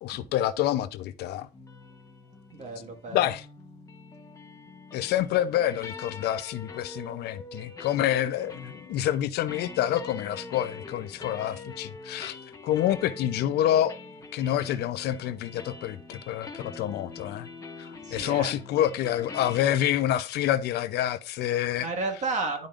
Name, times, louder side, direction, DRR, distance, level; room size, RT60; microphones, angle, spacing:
voice 1, 0.0-1.5 3.1-3.4 4.9-12.4 12.6-14.0 14.3-17.5 17.8-21.9, left 12 dB, 75° left, 0.6 m, -27 dB
sound 1, 1.5-19.6, left 3 dB, 20° left, 1.3 m, -44 dB
voice 2, 2.5-3.3 18.0-18.6 21.8-22.7, right 3 dB, 45° right, 1.7 m, -32 dB
11.0 x 5.1 x 2.5 m
cardioid pair, 110°, 17 cm